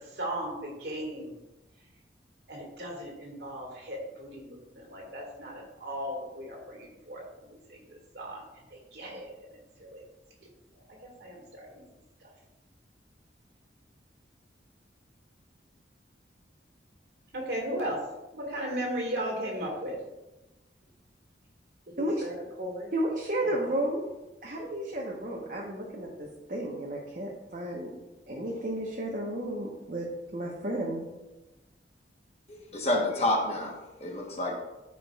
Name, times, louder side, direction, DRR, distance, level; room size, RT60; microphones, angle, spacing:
voice 1, 0.1-1.3 2.5-8.4 8.7-10.0 11.0-11.8 17.3-18.0 18.3-20.0 22.0-22.3 22.6-22.9 23.4-23.7, right 1 dB, 65° right, -1 dB, 2.0 m, -37 dB
voice 2, 22.9-24.0 24.4-27.9 28.3-31.0, right 1 dB, 45° right, -3 dB, 1.1 m, -32 dB
voice 3, 32.5-33.7 34.0-34.5, left 1 dB, 35° left, -1 dB, 1.2 m, -28 dB
12.5 x 5.0 x 2.4 m, 1.0 s
head